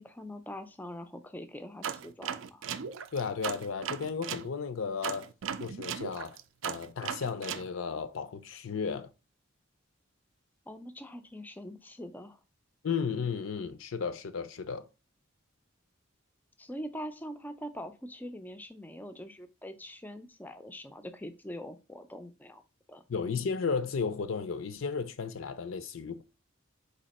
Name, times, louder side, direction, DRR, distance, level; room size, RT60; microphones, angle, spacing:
voice 1, 0.0-2.6 10.7-12.4 16.6-22.6 22.9-23.0, equal, 10° left, 0.4 m, -43 dB
sound 1, 1.8-4.5 5.0-7.7, right 8 dB, 70° right, 0.4 m, -37 dB
voice 2, 3.1-5.3 5.6-6.4 6.6-9.1 12.8-14.9 23.1-26.2, left 5 dB, 75° left, 0.5 m, -34 dB
4.2 x 2.8 x 4.1 m
head